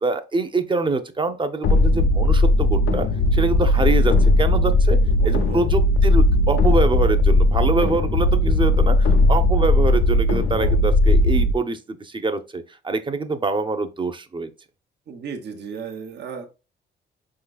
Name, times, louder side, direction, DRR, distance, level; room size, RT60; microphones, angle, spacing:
voice 1, 0.0-5.0 5.2-14.5, right 3 dB, 25° right, 0.7 m, -25 dB
sound 1, 1.6-11.5, left 1 dB, 85° left, 0.6 m, -17 dB
voice 2, 5.2-5.7 10.6-10.7 15.1-16.5, right 6 dB, 60° right, 1.0 m, -34 dB
5.3 x 3.8 x 2.3 m
cardioid pair, 90°, 20 cm